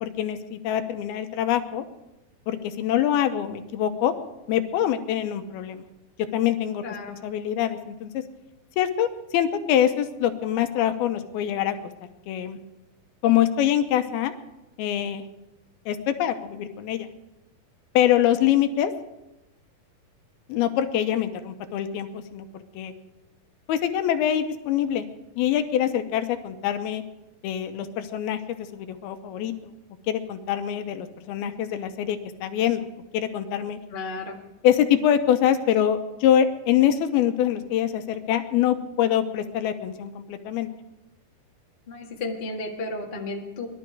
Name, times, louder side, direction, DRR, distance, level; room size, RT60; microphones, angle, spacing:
voice 1, 0.0-1.9 2.5-4.1 4.5-5.8 6.3-6.8 7.2-8.2 8.8-11.7 12.3-12.6 13.2-14.3 14.8-15.2 15.9-17.1 17.9-18.9 20.5-22.9 23.7-25.1 25.4-27.0 27.4-29.5 30.1-32.9 33.1-33.8 34.6-40.7, left 10 dB, 80° left, 8 dB, 2.8 m, -24 dB
voice 2, 6.8-7.2 33.9-34.3 41.9-43.7, left 2 dB, 35° left, -1 dB, 0.8 m, -33 dB
20.5 x 12.5 x 4.6 m, 0.95 s
omnidirectional pair, 4.4 m